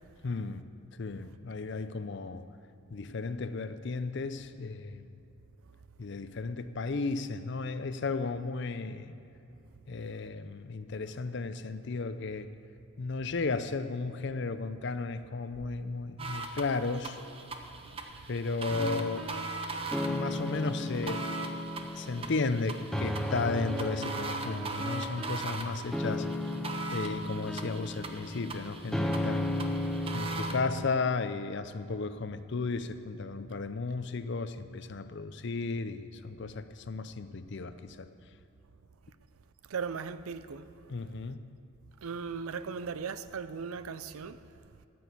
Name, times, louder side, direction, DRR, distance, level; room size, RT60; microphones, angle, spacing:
voice 1, 0.2-2.5 2.9-5.1 6.0-9.1 9.9-12.5 13.0-17.2 18.3-19.3 20.1-21.3 22.0-26.3 26.9-29.6 30.1-38.1 40.9-41.5, left 3 dB, 55° left, 0.5 m, -34 dB
sound 1, 16.2-30.6, right 3 dB, 25° right, 0.7 m, -40 dB
sound 2, 18.7-30.9, left 1 dB, ahead, 0.4 m, -35 dB
voice 2, 39.7-40.7 42.0-44.4, right 5 dB, 90° right, 0.5 m, -38 dB
13.5 x 6.2 x 8.4 m
head